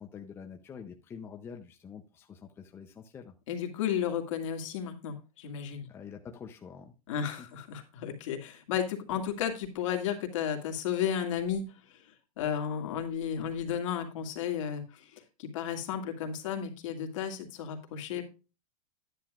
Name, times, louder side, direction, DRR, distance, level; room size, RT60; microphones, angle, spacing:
voice 1, 0.0-3.3 5.9-6.9 7.2-7.5, left 6 dB, 15° left, 4 dB, 0.6 m, -46 dB
voice 2, 3.5-5.8 7.1-11.7 11.9-12.0 12.4-15.1 15.4-18.2, left 8 dB, 60° left, 4 dB, 2.2 m, -33 dB
10.5 x 9.3 x 2.4 m, 0.30 s
supercardioid pair, 160°, 19 cm